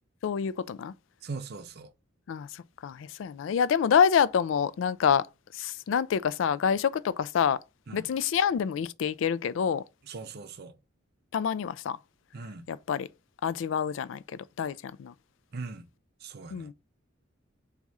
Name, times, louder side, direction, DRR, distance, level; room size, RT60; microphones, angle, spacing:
voice 1, 0.2-0.9 2.3-5.3 5.5-7.6 7.9-9.8 11.3-12.0 12.7-13.1 13.4-15.1 16.5-16.7, left 7 dB, 75° left, 0.3 m, -27 dB
voice 2, 1.2-1.9 7.9-8.1 10.1-10.7 12.3-12.7 15.5-15.9 16.2-16.7, right 4 dB, 55° right, 0.6 m, -40 dB
4.1 x 2.4 x 4.7 m
head